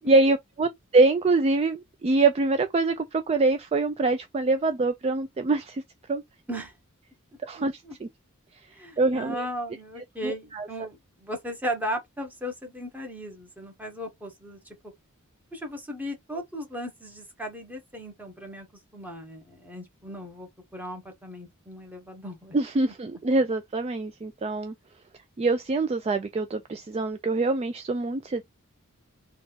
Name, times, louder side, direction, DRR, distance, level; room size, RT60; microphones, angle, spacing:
voice 1, 0.1-5.8 6.1-6.2 7.4-8.1 9.0-9.5 10.2-10.9 22.5-24.7 25.4-28.4, right 3 dB, 30° right, 0.3 m, -24 dB
voice 2, 7.5-7.9 8.7-14.8 15.5-18.7 18.9-22.6 22.9-23.0, equal, 10° right, 1.2 m, -36 dB
3.8 x 2.4 x 3.3 m
head